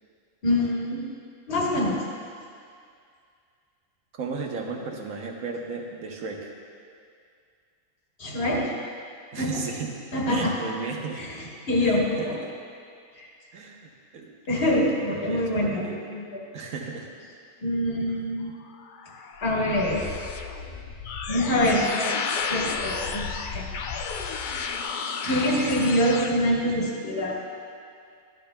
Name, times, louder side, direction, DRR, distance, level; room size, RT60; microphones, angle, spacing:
voice 1, 0.4-1.1 1.5-2.0 8.2-8.7 9.4-9.6 10.1-10.5 11.2-11.3 11.7-12.4 13.2-13.3 14.5-15.8 16.1-16.2 17.6-18.5 19.4-20.1 21.3-22.2 22.5-23.7 25.2-27.4, left 1 dB, 45° left, -3 dB, 1.5 m, -25 dB
voice 2, 4.2-6.5 9.3-10.0 10.3-11.2 11.8-12.5 13.5-14.3 15.1-16.0 16.5-17.1 18.1-18.2, right 4 dB, 85° right, 1 dB, 1.4 m, -35 dB
sound 1, 18.6-26.3, left 5 dB, 65° left, 0.5 m, -32 dB
12.5 x 10.5 x 2.2 m, 2.3 s
omnidirectional pair, 1.4 m